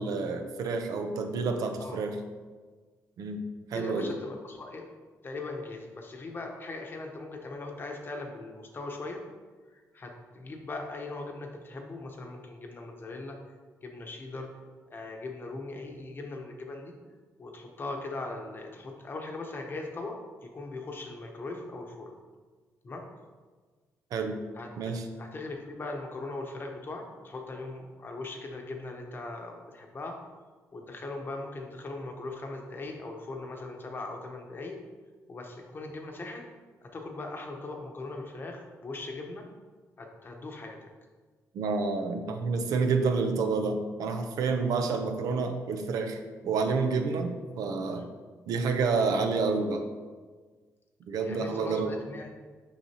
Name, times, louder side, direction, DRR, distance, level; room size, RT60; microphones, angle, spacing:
voice 1, 0.0-2.2 3.2-3.4 3.7-4.1 24.1-24.4 24.8-25.0 41.5-46.2 46.4-48.1 48.5-49.8 51.1-51.9, right 4 dB, 80° right, 5 dB, 0.7 m, -29 dB
voice 2, 3.7-4.8 5.2-9.2 9.7-13.4 13.8-14.5 14.9-16.9 17.4-22.2 22.8-23.0 24.5-24.9 25.2-30.2 30.7-34.8 35.3-36.4 36.8-39.4 40.0-40.9 51.2-52.3, left 2 dB, 35° left, 2 dB, 0.9 m, -39 dB
6.4 x 5.7 x 2.9 m, 1.4 s
cardioid pair, 115°, 6 cm